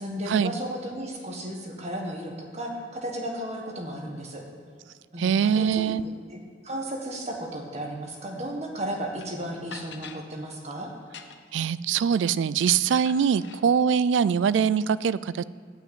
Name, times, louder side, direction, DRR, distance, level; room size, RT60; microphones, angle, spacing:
voice 1, 0.0-4.4 5.1-10.9, right 1 dB, 35° right, 1 dB, 1.6 m, -34 dB
voice 2, 5.2-6.0 11.5-15.4, right 7 dB, 75° right, 18 dB, 0.3 m, -23 dB
sound 1, 9.2-9.3 9.7-10.2 11.0-11.6 12.7-13.6, left 6 dB, 65° left, 0.8 m, -43 dB
11.5 x 5.9 x 8.8 m, 2.1 s
head